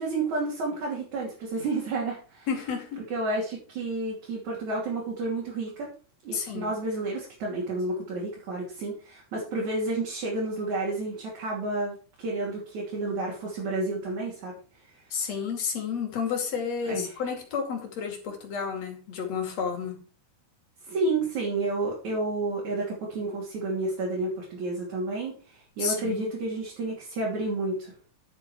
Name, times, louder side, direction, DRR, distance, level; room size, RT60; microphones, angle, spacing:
voice 1, 0.0-2.5 3.1-5.9 6.2-14.6 16.9-17.2 20.8-27.9, right 2 dB, 50° right, -4 dB, 4.1 m, -30 dB
voice 2, 2.5-3.0 6.3-6.7 15.1-20.0 25.8-26.3, left 6 dB, 45° left, 3 dB, 3.3 m, -31 dB
11.0 x 8.3 x 4.6 m, 0.38 s
omnidirectional pair, 4.5 m